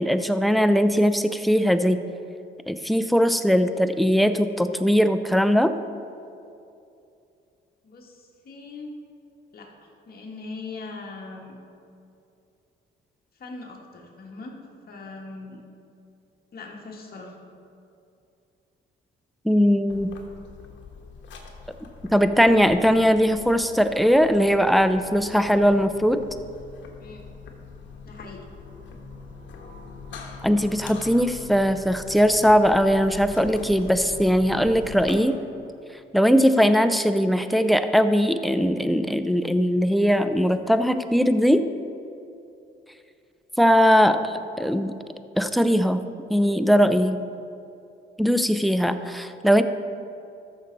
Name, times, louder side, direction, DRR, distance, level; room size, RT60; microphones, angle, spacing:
voice 1, 0.0-2.0 2.7-5.7 19.4-20.2 22.1-26.2 30.4-35.4 36.1-41.7 43.6-45.0 45.4-47.3 48.2-49.6, equal, ahead, 10 dB, 0.4 m, -20 dB
voice 2, 7.8-8.9 9.5-9.7 10.1-11.5 13.4-14.6 14.9-15.6 16.5-17.3 27.0-27.2 28.0-28.4, left 3 dB, 50° left, -1 dB, 1.8 m, -40 dB
sound 1, 19.9-35.2, left 4 dB, 65° left, 1.3 m, -43 dB
13.5 x 6.5 x 4.1 m, 2.6 s
cardioid pair, 95°, 21 cm